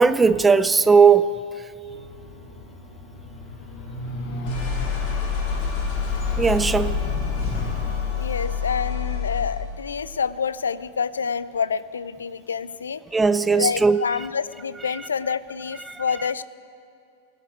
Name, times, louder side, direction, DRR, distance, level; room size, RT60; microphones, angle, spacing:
voice 1, 0.0-1.3 6.4-7.0 7.4-7.6 13.1-14.0 15.9-16.0, right 5 dB, 10° right, 0.4 m, -17 dB
sound 1, 1.8-9.7, left 5 dB, 40° left, 4.0 m, -28 dB
voice 2, 7.9-13.0 13.5-16.4, left 6 dB, 70° left, 0.4 m, -28 dB
18.0 x 6.6 x 9.3 m
figure-of-eight pair, 90°, 0 cm